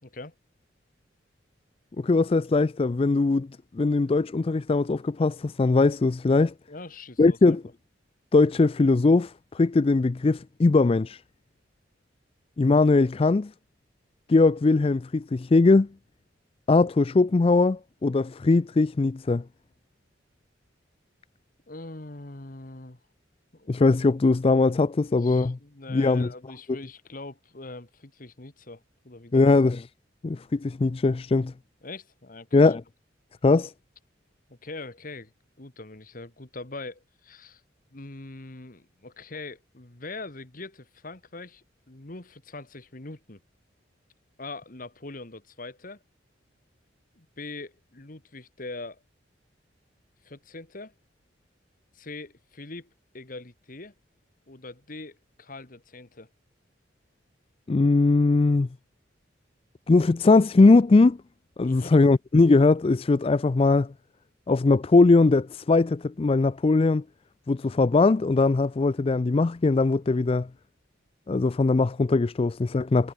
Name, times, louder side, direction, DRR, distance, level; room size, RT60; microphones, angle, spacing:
voice 1, 0.0-0.3 6.7-7.6 21.7-23.0 23.5-23.7 25.2-29.5 31.8-32.6 34.5-35.3 35.6-37.6 37.9-43.4 44.4-46.0 47.2-49.0 50.2-50.9 51.9-52.9 53.1-53.9 54.5-56.3 61.6-61.9, left 2 dB, 45° left, 1.7 m, -42 dB
voice 2, 2.0-3.5 3.7-6.5 7.2-7.6 8.3-11.2 12.6-13.5 14.3-15.9 16.7-19.4 23.7-25.6 25.9-26.3 29.3-29.8 30.2-31.5 32.5-32.8 33.4-33.7 57.7-58.7 59.9-61.2 61.6-63.9 64.5-67.0 67.5-70.5 71.3-73.1, left 3 dB, 30° left, 0.4 m, -20 dB
head